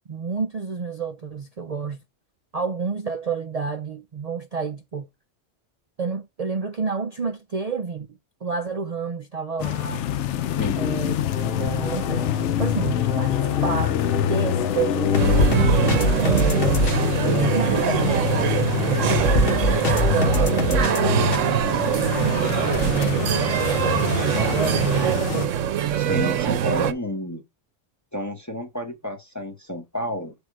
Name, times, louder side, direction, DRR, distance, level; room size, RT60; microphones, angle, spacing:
voice 1, 0.1-2.0 2.5-5.1 6.0-10.0 10.8-14.0 14.3-15.6 16.2-16.8 17.3-19.1 19.9-23.4 23.9-25.6, right 5 dB, 50° right, 0.4 m, -30 dB
sound 1, 9.6-25.5, left 11 dB, 70° left, 0.8 m, -27 dB
sound 2, 11.2-21.4, left 3 dB, 50° left, 1.2 m, -24 dB
sound 3, 15.2-26.9, right 10 dB, 85° right, 1.0 m, -23 dB
voice 2, 26.0-27.4 28.1-30.3, left 1 dB, 15° left, 0.8 m, -30 dB
7.3 x 3.5 x 4.6 m
omnidirectional pair, 1.3 m